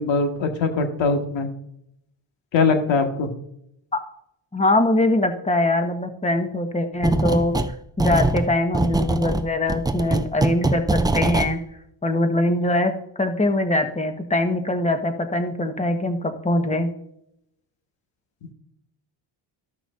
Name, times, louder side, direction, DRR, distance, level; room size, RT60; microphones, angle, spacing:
voice 1, 0.0-1.5 2.5-3.3, left 4 dB, 65° left, 4 dB, 1.9 m, -21 dB
voice 2, 4.5-7.5 8.0-11.6 12.0-12.9 13.2-16.9, left 1 dB, 15° left, 6 dB, 1.4 m, -22 dB
sound 1, 7.0-7.7 8.0-11.5, right 2 dB, 10° right, 0.4 m, -23 dB
14.5 x 6.0 x 2.6 m, 0.76 s
cardioid pair, 85°, 48 cm